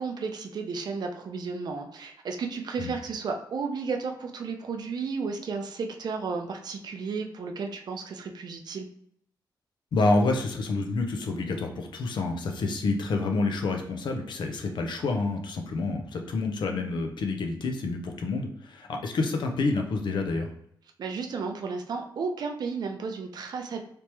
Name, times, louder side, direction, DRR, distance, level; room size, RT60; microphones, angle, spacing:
voice 1, 0.0-8.9 21.0-23.8, right 4 dB, 55° right, 3 dB, 0.5 m, -33 dB
voice 2, 9.9-20.5, left 3 dB, 70° left, 3 dB, 0.6 m, -28 dB
3.4 x 2.9 x 3.0 m, 0.69 s
wide cardioid pair, 130°, 8 cm